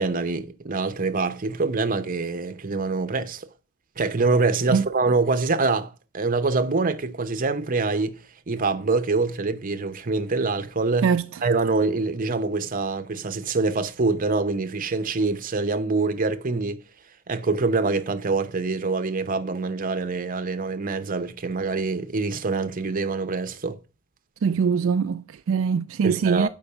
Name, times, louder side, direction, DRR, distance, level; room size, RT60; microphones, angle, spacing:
voice 1, 0.0-3.5 4.0-8.2 8.5-11.1 11.4-16.8 17.3-23.8 26.0-26.5, right 3 dB, 40° right, 0.7 m, -25 dB
voice 2, 24.4-26.5, right 6 dB, 60° right, 0.3 m, -22 dB
6.9 x 5.3 x 6.6 m
head